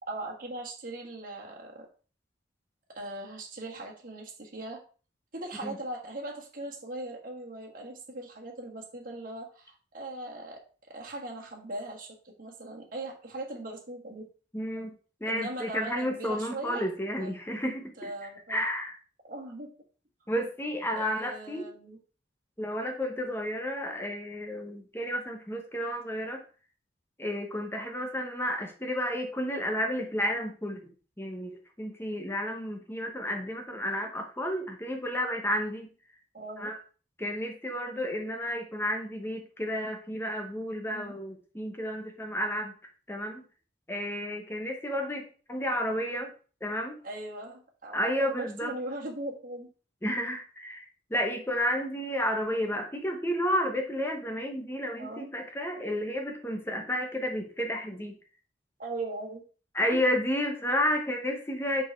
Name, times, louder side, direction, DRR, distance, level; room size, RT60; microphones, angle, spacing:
voice 1, 0.0-1.9 2.9-4.8 5.3-10.6 10.9-14.2 15.2-16.9 17.2-17.4 17.7-18.6 19.2-19.7 21.0-22.0 36.3-36.7 40.9-41.1 47.0-49.7 55.0-55.3 58.8-59.4 59.9-60.0, right 2 dB, 50° right, -1 dB, 1.6 m, -39 dB
voice 2, 14.5-14.9 15.2-18.1 18.5-18.9 20.3-21.7 22.6-26.4 27.2-30.8 31.2-35.9 36.6-36.7 37.2-42.7 43.1-43.4 43.9-46.3 46.6-47.0 47.9-48.7 50.0-58.1 59.7-61.8, equal, 15° left, 3 dB, 0.9 m, -31 dB
5.5 x 4.8 x 4.5 m, 0.38 s
head